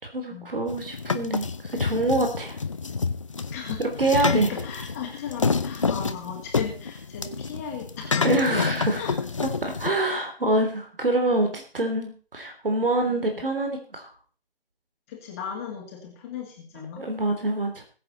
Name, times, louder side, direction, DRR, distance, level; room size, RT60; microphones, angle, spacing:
voice 1, 0.0-2.6 3.8-4.5 8.2-9.0 9.4-14.1 16.7-17.8, right 2 dB, 65° right, 4 dB, 3.4 m, -25 dB
sound 1, 0.7-9.9, left 4 dB, 30° left, 0.7 m, -28 dB
voice 2, 3.5-8.3 8.9-9.1 13.1-13.3 15.1-17.1, left 7 dB, 15° left, 0 dB, 2.1 m, -36 dB
20.5 x 7.8 x 4.1 m, 0.38 s
figure-of-eight pair, 155°, 30 cm